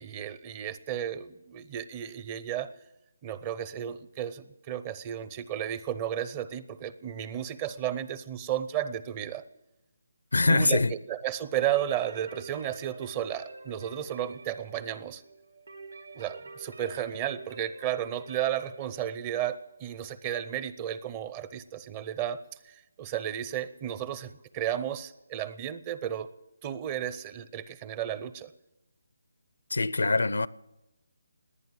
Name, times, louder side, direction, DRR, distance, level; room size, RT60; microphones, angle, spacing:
voice 1, 0.0-2.7 3.2-9.5 10.5-15.2 16.1-22.4 22.7-26.3 26.6-28.5, right 10 dB, 25° right, 0.7 m, -33 dB
voice 2, 10.3-10.9 29.7-30.5, left 3 dB, 75° left, 0.6 m, -23 dB
sound 1, 11.7-21.4, right 3 dB, 70° right, 1.7 m, -48 dB
19.5 x 9.2 x 7.5 m
figure-of-eight pair, 150°, 0 cm